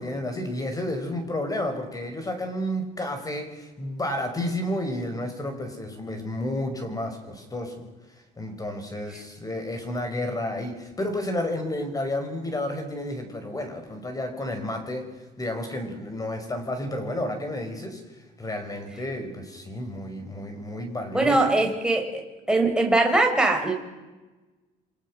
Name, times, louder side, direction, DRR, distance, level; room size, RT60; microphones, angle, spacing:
voice 1, 0.0-7.9 8.4-15.1 15.4-18.0 18.4-21.4, left 1 dB, 20° left, 7 dB, 5.5 m, -31 dB
voice 2, 21.1-23.7, right 2 dB, 5° right, 2 dB, 4.4 m, -22 dB
29.0 x 24.5 x 6.3 m, 1.2 s
cardioid pair, 110°, 17 cm